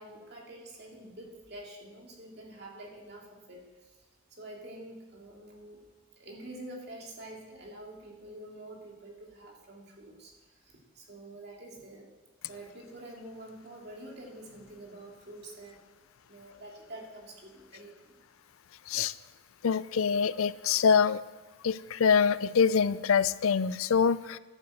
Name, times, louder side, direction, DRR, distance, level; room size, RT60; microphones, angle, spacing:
voice 1, 0.0-3.9 4.3-5.8 6.2-12.1 12.5-15.8 16.3-18.1, right 1 dB, 50° right, -1 dB, 2.7 m, -47 dB
voice 2, 19.6-21.2 21.6-24.4, left 6 dB, 80° left, 17 dB, 0.4 m, -25 dB
12.0 x 8.3 x 7.9 m, 1.3 s
head